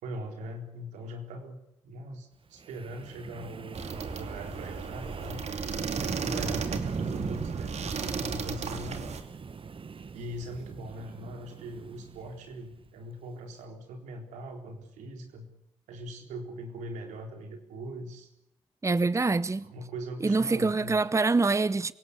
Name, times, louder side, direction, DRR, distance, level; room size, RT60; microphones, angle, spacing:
voice 1, 0.0-1.6 1.8-5.4 6.0-9.1 10.1-15.5 15.9-18.3 19.6-21.0, right 1 dB, 85° right, 3.9 m, -41 dB
Wind, 2.6-12.9, right 5 dB, 45° right, 1.3 m, -39 dB
sound 1, 3.7-9.2, right 5 dB, 65° right, 2.8 m, -35 dB
voice 2, 18.8-19.7 20.2-21.9, right 3 dB, 25° right, 0.8 m, -25 dB
27.0 x 17.5 x 8.5 m
supercardioid pair, 45°, 12 cm